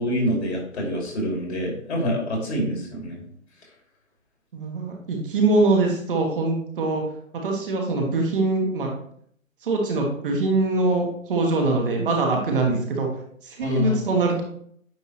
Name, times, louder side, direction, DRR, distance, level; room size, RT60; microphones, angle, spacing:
voice 1, 0.0-3.2 12.6-12.8 13.6-14.1, equal, 55° left, -1 dB, 2.6 m, -26 dB
voice 2, 4.5-7.0 7.4-8.9 9.6-13.1 13.4-14.4, right 3 dB, 40° right, 0 dB, 1.4 m, -23 dB
9.1 x 3.5 x 3.0 m, 0.64 s
hypercardioid pair, 150°, 41 cm